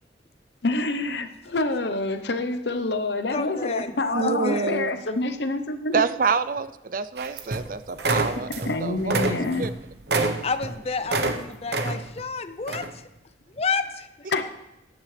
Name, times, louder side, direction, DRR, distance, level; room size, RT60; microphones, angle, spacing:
voice 1, 0.6-6.1 8.6-9.7 14.3-14.5, left 2 dB, 70° left, 9 dB, 0.9 m, -27 dB
voice 2, 3.3-3.9 4.2-4.7 10.4-13.1 13.5-14.3, left 4 dB, 35° left, 10 dB, 0.6 m, -30 dB
voice 3, 4.1-4.9 5.9-9.7, right 5 dB, 50° right, 14 dB, 0.4 m, -27 dB
sound 1, 7.2-7.7 8.0-8.7 9.0-11.4 11.7-12.2 12.7-12.9, right 3 dB, 65° right, 1.0 m, -26 dB
14.5 x 10.5 x 3.3 m, 0.91 s
head